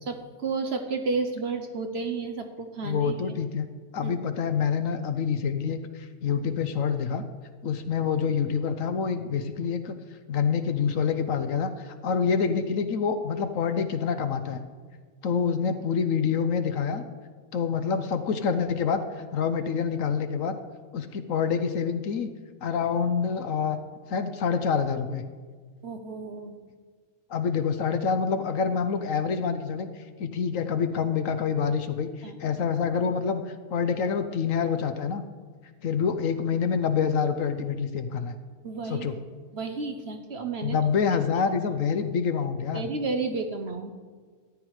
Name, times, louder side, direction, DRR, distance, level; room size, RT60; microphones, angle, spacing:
voice 1, 0.0-3.2 4.0-4.2 25.8-26.6 32.2-32.4 38.6-39.1 39.5-40.8 42.7-43.9, right 4 dB, 50° right, 6 dB, 1.0 m, -32 dB
voice 2, 2.8-3.7 3.9-7.2 7.6-10.0 10.3-14.6 15.2-17.0 17.5-20.6 20.9-22.3 22.6-23.8 24.1-25.2 27.3-35.2 35.8-38.3 38.9-39.1 40.6-42.9, left 6 dB, 65° left, 9 dB, 1.0 m, -27 dB
14.0 x 9.5 x 4.8 m, 1.5 s
omnidirectional pair, 1.6 m